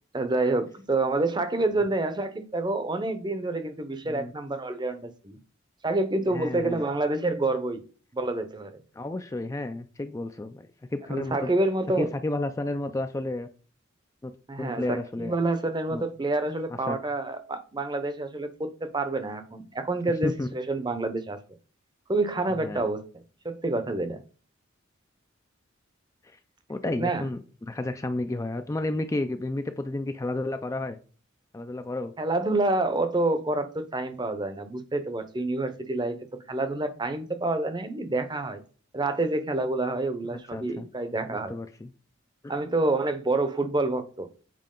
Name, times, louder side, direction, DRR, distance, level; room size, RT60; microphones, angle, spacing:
voice 1, 0.1-5.4 5.8-7.8 8.1-8.7 11.1-12.1 14.5-21.4 22.1-23.0 23.4-24.2 27.0-27.2 32.2-36.2 36.5-38.6 38.9-41.6 42.5-44.3, right 2 dB, 20° right, 0.7 m, -28 dB
voice 2, 6.3-6.8 8.9-11.5 12.0-13.5 14.2-14.3 14.6-15.3 15.9-16.0 16.9-17.0 20.2-20.5 22.6-22.8 26.2-26.4 26.7-31.0 31.5-32.1 40.3-40.9 41.3-41.9 42.4-42.5, left 2 dB, 15° left, 0.4 m, -32 dB
7.5 x 4.6 x 3.8 m
head